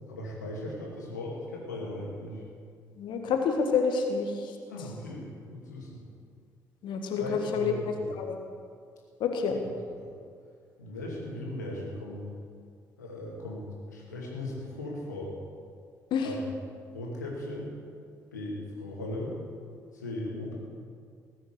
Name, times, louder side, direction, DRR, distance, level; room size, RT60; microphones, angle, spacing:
voice 1, 0.1-2.4 4.7-6.0 7.2-8.1 9.5-9.6 10.0-10.1 10.8-12.2 13.0-15.3 16.2-16.4 16.9-17.7 18.3-19.3 19.9-20.6, left 1 dB, 80° left, -3 dB, 2.5 m, -38 dB
voice 2, 3.0-4.3 6.8-7.7 8.2-8.3 9.2-9.6 16.1-16.3, left 5 dB, 55° left, 4 dB, 1.5 m, -28 dB
19.0 x 6.7 x 8.3 m, 2.2 s
figure-of-eight pair, 40°, 9 cm